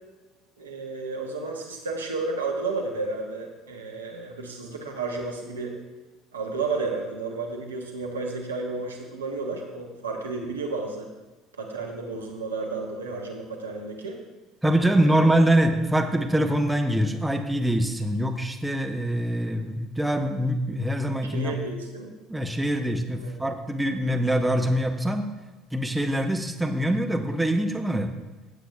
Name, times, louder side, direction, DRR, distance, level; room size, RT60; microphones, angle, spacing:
voice 1, 0.6-5.8 6.3-11.1 11.6-14.2 14.9-15.3 21.3-22.1 23.2-23.4, right 3 dB, 85° right, 1 dB, 1.1 m, -32 dB
voice 2, 14.6-21.6 22.3-25.2 25.7-28.1, right 1 dB, 5° right, 5 dB, 1.0 m, -24 dB
15.5 x 8.1 x 2.4 m, 1.2 s
figure-of-eight pair, 60°, 0 cm